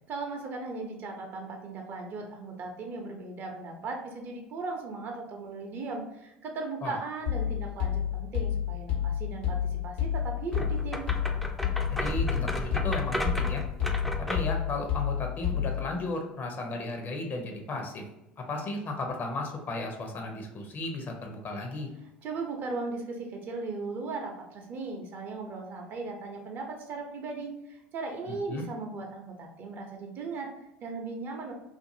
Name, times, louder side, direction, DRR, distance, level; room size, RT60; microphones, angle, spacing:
voice 1, 0.1-11.0 22.2-30.5 30.8-31.5, right 3 dB, 45° right, 2 dB, 0.6 m, -37 dB
sound 1, 7.3-15.9, left 9 dB, 80° left, 1.0 m, -30 dB
sound 2, 10.5-14.6, equal, ahead, 0.4 m, -34 dB
voice 2, 11.9-13.6 14.2-18.0 18.4-21.9 28.3-28.6, left 2 dB, 40° left, 3 dB, 0.7 m, -34 dB
2.6 x 2.5 x 2.6 m, 0.90 s
hypercardioid pair, 70°, 5 cm